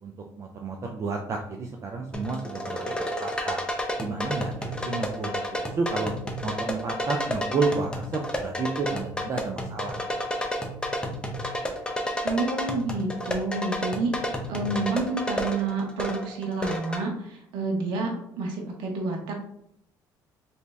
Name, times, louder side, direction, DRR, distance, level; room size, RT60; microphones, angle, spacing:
voice 1, 0.0-3.6 4.0-5.4 5.7-6.1 6.4-10.1 14.5-14.9, right 4 dB, 35° right, 2 dB, 0.4 m, -31 dB
sound 1, 2.1-17.0, equal, 10° left, 0.6 m, -31 dB
voice 2, 12.2-19.4, right 3 dB, 80° right, 1 dB, 0.8 m, -29 dB
3.1 x 2.7 x 3.4 m, 0.72 s
cardioid pair, 110°, 8 cm